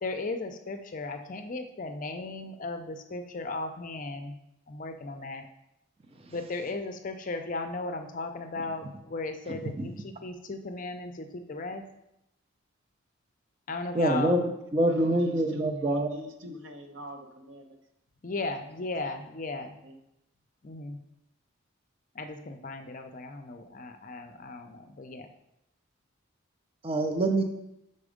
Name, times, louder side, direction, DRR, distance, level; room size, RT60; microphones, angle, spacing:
voice 1, 0.0-4.3 4.7-5.5 6.3-11.8 13.7-14.4 18.2-19.8 20.6-21.0 22.1-25.3, left 3 dB, 40° left, 6 dB, 0.5 m, -36 dB
voice 2, 13.9-16.1 26.8-27.4, right 1 dB, 25° right, 5 dB, 0.4 m, -25 dB
voice 3, 14.9-17.8 19.5-19.9, left 1 dB, 60° right, 4 dB, 0.8 m, -44 dB
6.0 x 4.2 x 5.0 m, 0.85 s
head